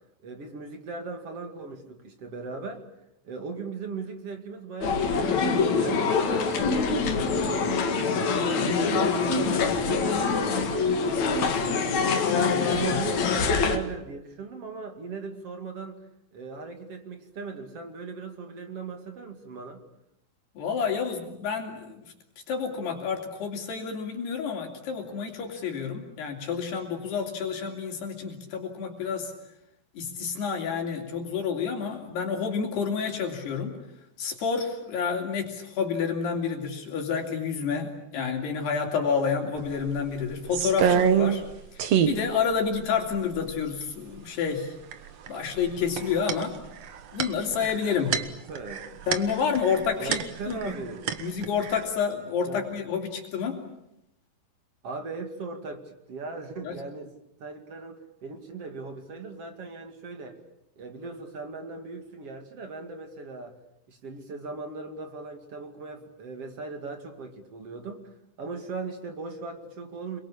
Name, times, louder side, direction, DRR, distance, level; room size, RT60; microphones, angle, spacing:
voice 1, 0.2-2.9 3.2-7.8 8.1-16.1 16.3-19.8 48.0-48.2 48.5-48.9 50.0-51.1 52.5-52.7 54.8-57.1 57.4-60.4 60.8-63.6 63.9-70.2, right 4 dB, 40° right, 6 dB, 2.7 m, -38 dB
sound 1, 4.8-13.8, left 4 dB, 50° left, 2.6 m, -25 dB
voice 2, 20.6-22.1 22.5-29.3 30.0-33.8 34.2-41.4 41.7-44.7 45.3-46.6 47.1-48.1 49.1-50.2 50.5-50.7 51.2-53.6 56.6-56.8, left 6 dB, 65° left, 3 dB, 5.0 m, -29 dB
sound 2, 39.6-39.7 40.0-41.5 41.8-42.2 42.8-42.9 43.1-43.8 44.9-45.3 45.6-50.8 51.1-51.8, right 8 dB, 70° right, 1.5 m, -26 dB
29.0 x 23.0 x 8.6 m, 0.80 s
omnidirectional pair, 5.1 m